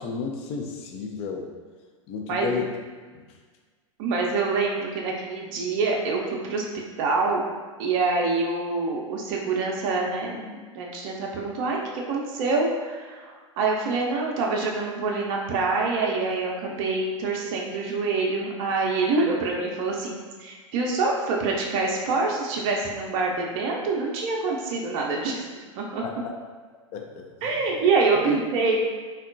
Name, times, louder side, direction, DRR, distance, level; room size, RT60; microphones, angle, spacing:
voice 1, 0.0-1.5 2.1-2.7 3.1-3.3 26.0-26.1 26.9-27.3 28.3-28.4, left 5 dB, 35° left, 2 dB, 0.5 m, -32 dB
voice 2, 2.3-2.6 4.0-6.6 7.0-7.4 7.8-25.4 25.8-26.0 27.4-28.8, right 3 dB, 45° right, -1 dB, 0.5 m, -26 dB
3.5 x 2.2 x 2.5 m, 1.5 s
figure-of-eight pair, 95°, 17 cm